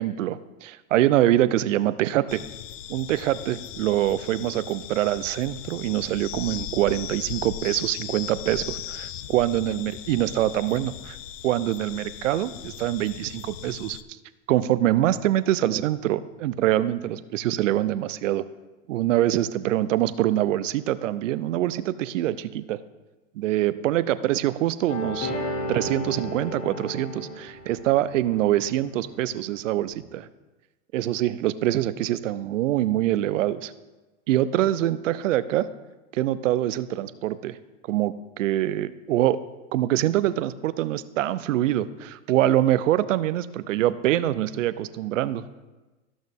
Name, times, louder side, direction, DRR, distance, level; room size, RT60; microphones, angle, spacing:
voice 1, 0.0-2.4 2.9-11.2 11.4-14.0 14.5-18.4 18.9-22.8 23.4-25.3 25.7-30.3 30.9-33.7 34.3-35.7 36.1-37.6 37.9-39.4 39.7-45.4, right 13 dB, 85° right, 15 dB, 0.6 m, -24 dB
sound 1, 2.3-14.0, left 11 dB, 90° left, 0.6 m, -38 dB
sound 2, 24.9-29.0 29.8-29.9, left 1 dB, 65° left, 2.3 m, -34 dB
14.0 x 6.3 x 3.5 m, 1.2 s
hypercardioid pair, 115°, 37 cm